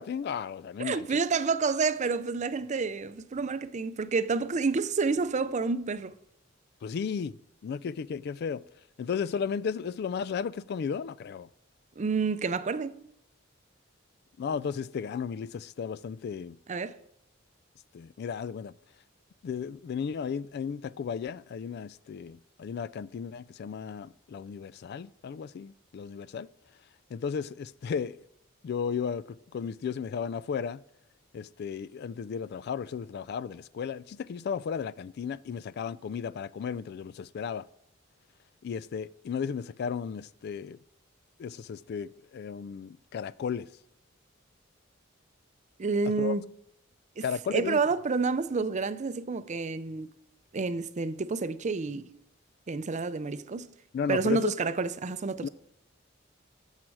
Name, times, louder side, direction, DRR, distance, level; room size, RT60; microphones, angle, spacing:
voice 1, 0.0-1.2 6.8-7.4 7.6-8.6 9.0-11.5 14.4-16.6 17.9-18.7 19.4-26.5 27.1-28.2 28.6-30.8 31.3-37.7 38.6-40.8 41.4-43.7 46.2-46.3 47.2-47.8 53.9-54.5 55.4-55.5, left 6 dB, 55° left, 0.3 m, -34 dB
voice 2, 0.8-6.1 12.0-13.0 16.7-17.0 45.8-46.4 47.2-47.3 47.5-50.1 50.5-52.1 52.7-53.7 54.1-55.5, right 4 dB, 35° right, 0.5 m, -29 dB
14.0 x 7.4 x 4.7 m
head